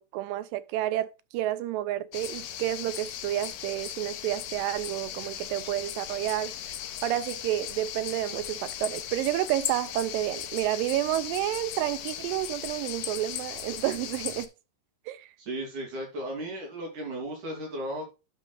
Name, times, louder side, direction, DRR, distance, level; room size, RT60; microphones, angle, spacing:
voice 1, 0.0-6.5 7.0-14.5 15.1-15.3, right 14 dB, 85° right, 2.3 m, -30 dB
sound 1, 2.1-14.5, left 11 dB, 80° left, 2.5 m, -37 dB
voice 2, 15.4-18.1, right 1 dB, 65° right, 4.0 m, -35 dB
11.0 x 6.1 x 2.3 m
omnidirectional pair, 3.9 m